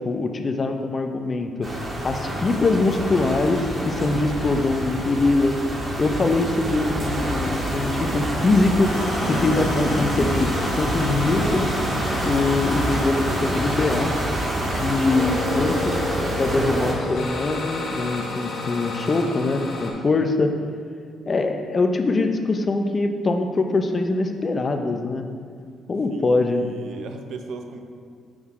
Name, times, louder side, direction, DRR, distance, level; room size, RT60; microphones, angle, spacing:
voice 1, 0.0-5.6 6.0-11.8 12.2-14.1 14.6-16.0 16.4-20.5 21.3-25.3 25.9-26.6, left 3 dB, 35° left, 5 dB, 0.7 m, -23 dB
sound 1, 1.6-16.9, right 1 dB, 35° right, 1.8 m, -27 dB
sound 2, 8.8-19.9, left 2 dB, 65° left, 1.3 m, -32 dB
voice 2, 26.1-27.8, right 4 dB, 70° right, 6 dB, 0.7 m, -37 dB
6.3 x 5.6 x 4.8 m, 2.1 s
cardioid pair, 90°, 0 cm